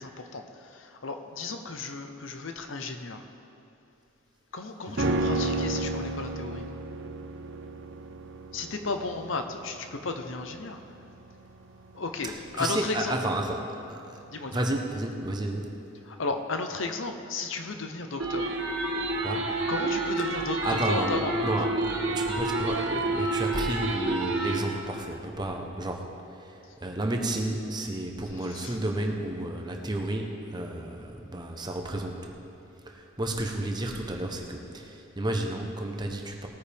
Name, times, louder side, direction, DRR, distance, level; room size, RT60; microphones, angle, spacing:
voice 1, 0.0-3.2 4.5-6.6 8.5-10.8 11.9-13.2 14.3-14.7 16.1-18.5 19.7-21.4 28.3-28.8, left 3 dB, 75° left, 6 dB, 0.8 m, -34 dB
voice 2, 4.9-5.3 12.2-14.2 14.5-15.8 19.2-19.5 20.2-20.3 20.6-32.3 32.9-36.5, right 1 dB, 20° right, 2 dB, 0.9 m, -32 dB
sound 1, 5.0-14.4 14.7-14.8, right 2 dB, 60° right, 0.6 m, -33 dB
sound 2, 18.2-24.6, right 2 dB, 80° right, 1.5 m, -29 dB
19.0 x 9.2 x 3.5 m, 2.8 s
head